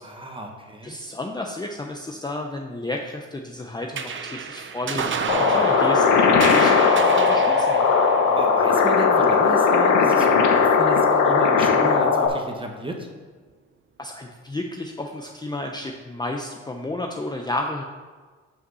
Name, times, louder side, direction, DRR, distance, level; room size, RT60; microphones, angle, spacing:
voice 1, 0.0-1.0 8.3-13.1, right 1 dB, 15° right, 2 dB, 1.3 m, -33 dB
voice 2, 0.8-7.8 14.0-17.8, left 2 dB, 15° left, 1 dB, 0.6 m, -32 dB
sound 1, 3.9-10.7, right 6 dB, 40° right, 0.6 m, -31 dB
sound 2, 5.3-12.3, left 5 dB, 80° left, 1.1 m, -18 dB
5.7 x 5.3 x 6.2 m, 1.5 s
cardioid pair, 90°, 30 cm